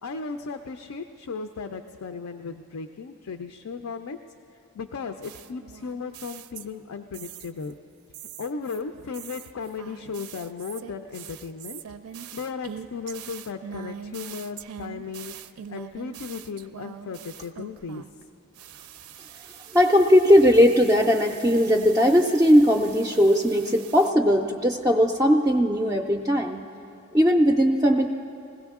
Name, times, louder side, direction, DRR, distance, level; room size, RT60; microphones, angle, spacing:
voice 1, 0.0-4.2 4.7-7.7 8.4-11.8 12.2-15.4 15.7-18.1, left 5 dB, 80° left, 7 dB, 0.4 m, -36 dB
sound 1, 5.2-7.7 8.1-18.2 18.5-24.1, right 9 dB, 90° right, 0.5 m, -43 dB
voice 2, 19.7-26.6 27.1-28.1, equal, 15° right, 2 dB, 0.3 m, -19 dB
20.5 x 16.5 x 3.6 m, 2.6 s
head